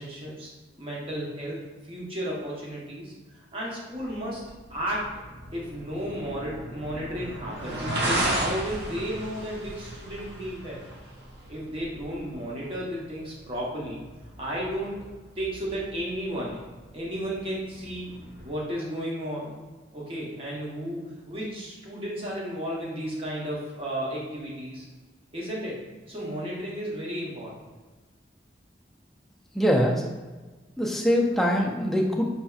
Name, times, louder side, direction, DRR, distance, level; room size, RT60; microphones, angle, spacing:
voice 1, 0.0-4.4 4.7-5.1 5.5-10.8 11.5-14.0 14.4-16.6 16.9-18.1 18.4-19.6 19.9-24.9 25.3-25.8 26.1-27.5, equal, 30° right, -5 dB, 1.0 m, -33 dB
sound 1, 3.9-18.5, right 1 dB, 65° right, 0.8 m, -36 dB
voice 2, 29.5-30.0 30.8-32.3, equal, ahead, -1 dB, 0.4 m, -23 dB
5.5 x 2.7 x 2.3 m, 1.2 s
head